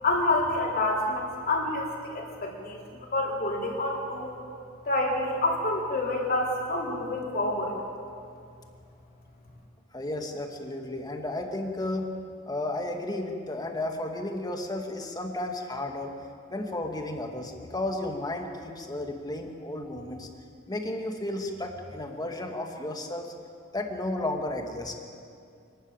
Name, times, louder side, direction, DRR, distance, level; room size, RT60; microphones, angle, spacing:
voice 1, 0.0-2.8 3.1-4.3 4.9-7.8, left 2 dB, 45° left, -2 dB, 4.4 m, -28 dB
voice 2, 9.9-12.1 12.5-16.1 16.5-20.3 20.7-23.3 23.7-24.9, left 1 dB, 20° left, 3 dB, 2.1 m, -33 dB
26.0 x 13.0 x 9.1 m, 2.4 s
head